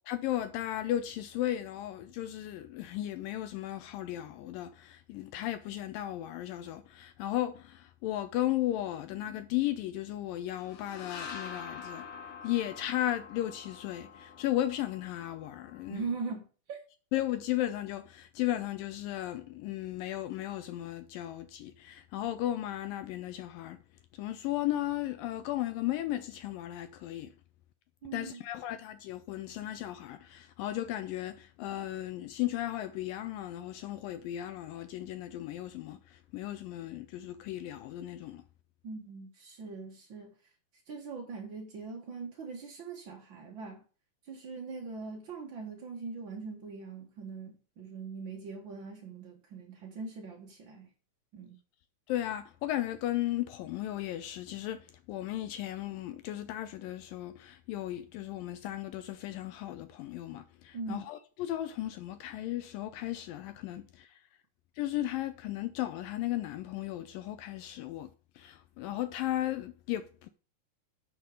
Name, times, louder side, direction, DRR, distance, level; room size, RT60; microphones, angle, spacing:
voice 1, 0.1-12.1 12.4-16.0 17.1-23.8 24.1-27.3 28.1-38.4 52.1-64.2 64.8-68.1 68.4-70.3, left 13 dB, 80° left, 2.1 m, -35 dB
sound 1, 10.5-16.2, left 5 dB, 65° left, 1.4 m, -46 dB
voice 2, 15.9-16.8 28.0-28.4 38.8-40.3 40.9-43.8 44.2-50.9 51.3-51.6 60.7-61.1, right 4 dB, 60° right, 1.3 m, -41 dB
11.0 x 5.9 x 4.9 m
omnidirectional pair, 4.3 m